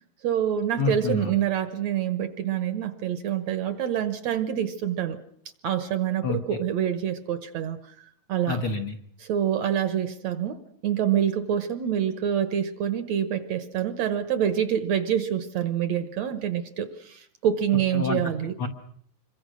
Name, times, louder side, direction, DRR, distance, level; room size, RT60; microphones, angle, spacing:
voice 1, 0.2-5.2 5.6-8.6 9.2-18.5, right 9 dB, 65° right, 12 dB, 1.9 m, -26 dB
voice 2, 0.8-1.3 6.2-6.4 8.5-9.0 17.9-18.3 18.6-18.7, left 4 dB, 60° left, 5 dB, 1.6 m, -27 dB
26.5 x 23.0 x 6.3 m, 0.65 s
omnidirectional pair, 4.0 m